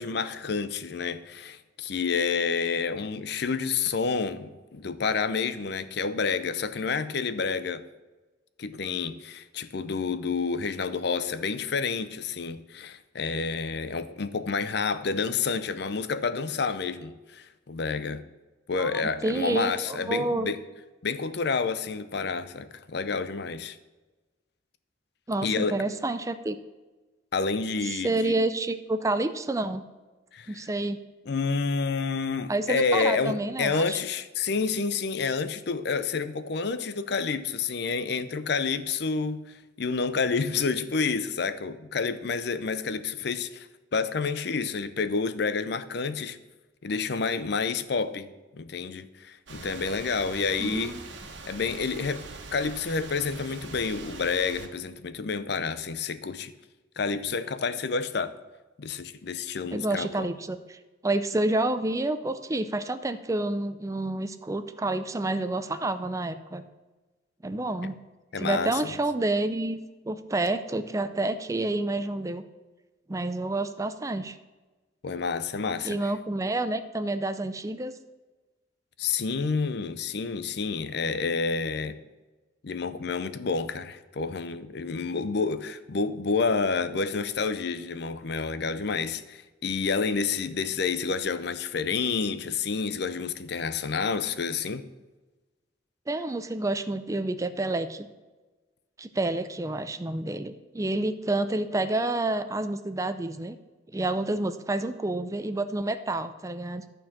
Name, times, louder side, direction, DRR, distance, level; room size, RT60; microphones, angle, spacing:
voice 1, 0.0-7.8 8.6-18.2 18.7-20.6 21.0-23.8 25.4-25.8 27.3-28.3 30.3-30.6 31.3-39.4 39.8-43.7 43.9-46.4 46.8-48.3 48.5-51.0 51.5-52.3 52.5-56.5 57.0-58.3 58.8-60.3 68.3-68.9 75.0-76.1 79.0-82.0 82.6-94.8, left 5 dB, 60° left, 0.6 m, -29 dB
voice 2, 18.8-20.5 25.3-26.6 27.8-29.8 30.5-31.0 32.5-34.0 50.6-51.0 59.7-66.6 67.4-68.0 68.4-69.8 70.0-72.4 73.1-74.4 75.8-77.9 96.1-98.1 99.0-103.6 103.9-106.8, right 2 dB, 15° right, 0.4 m, -29 dB
sound 1, 49.5-54.7, right 3 dB, 70° right, 1.4 m, -43 dB
12.0 x 4.5 x 7.2 m
head